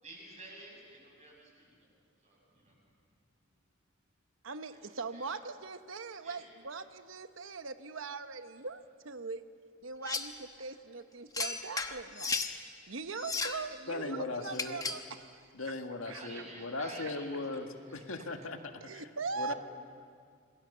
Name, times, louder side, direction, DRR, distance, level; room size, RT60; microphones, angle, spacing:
voice 1, 0.0-1.9 2.2-2.7 5.1-5.3 6.2-6.5 16.0-17.6 17.9-18.2, right 2 dB, 35° right, -1 dB, 7.0 m, -51 dB
voice 2, 4.4-9.4 9.8-12.4 12.9-15.7 16.1-16.4 17.0-17.1 18.8-19.5, right 4 dB, 70° right, 10 dB, 1.0 m, -41 dB
sound 1, 10.1-10.4 11.3-12.6 13.1-13.7 14.5-15.1, left 4 dB, 20° left, 1.1 m, -35 dB
voice 3, 13.9-14.8 15.5-19.1 19.4-19.5, left 3 dB, 85° left, 5 dB, 1.8 m, -38 dB
27.0 x 21.5 x 6.9 m, 2.1 s
head